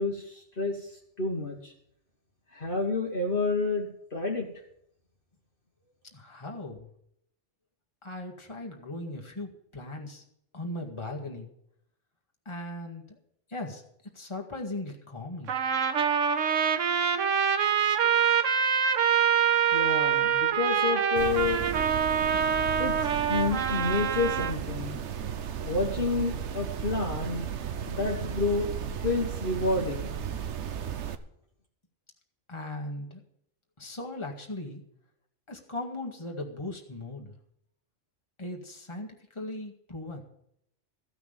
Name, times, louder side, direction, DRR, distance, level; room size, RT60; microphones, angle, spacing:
voice 1, 0.0-1.7 2.5-4.5 19.7-21.6 22.8-25.0 25.6-27.5 27.9-28.7 29.0-30.1, left 3 dB, 45° left, 0 dB, 1.7 m, -29 dB
voice 2, 6.1-6.9 8.0-10.2 10.5-11.5 12.5-13.2 13.5-15.6 32.5-33.2 33.8-34.8 35.5-37.4 38.4-40.2, left 2 dB, 25° left, 1 dB, 1.9 m, -38 dB
Trumpet, 15.5-24.5, right 7 dB, 90° right, 1.3 m, -25 dB
sound 1, 21.2-31.2, right 8 dB, 70° right, 1.1 m, -35 dB
15.0 x 6.0 x 8.8 m, 0.73 s
omnidirectional pair, 1.2 m